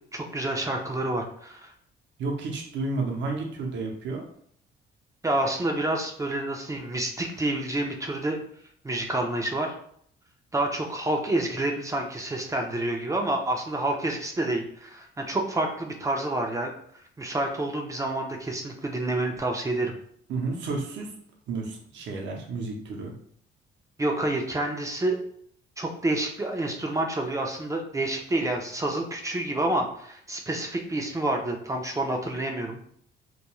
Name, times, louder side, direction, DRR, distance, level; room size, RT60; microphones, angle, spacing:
voice 1, 0.1-1.7 5.2-8.4 8.8-9.7 10.5-16.7 17.2-19.9 24.0-25.2 25.8-32.8, right 1 dB, 15° right, 2 dB, 0.4 m, -28 dB
voice 2, 2.2-4.2 20.3-21.1 21.5-23.1, right 3 dB, 70° right, 1 dB, 0.7 m, -31 dB
2.3 x 2.3 x 2.9 m, 0.64 s
cardioid pair, 90°, 20 cm